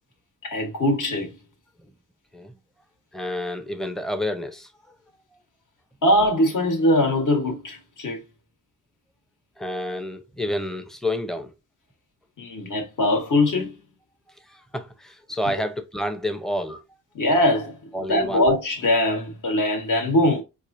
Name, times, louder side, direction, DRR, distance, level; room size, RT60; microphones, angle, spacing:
voice 1, 0.4-1.4 6.0-8.2 12.4-13.7 17.1-20.4, left 1 dB, 60° left, 1.3 m, -22 dB
voice 2, 3.1-4.9 9.6-11.5 14.5-16.8 17.9-18.4, left 1 dB, ahead, 0.6 m, -29 dB
4.6 x 2.5 x 2.6 m
cardioid pair, 75°, 36 cm